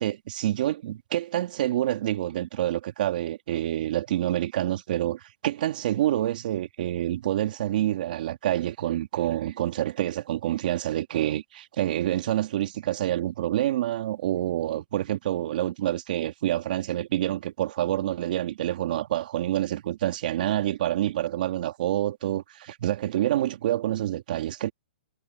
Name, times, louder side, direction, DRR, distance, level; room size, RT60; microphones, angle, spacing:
voice 1, 0.0-24.7, right 13 dB, 60° right, 2.0 m, -27 dB
hypercardioid pair, 145°, 5 cm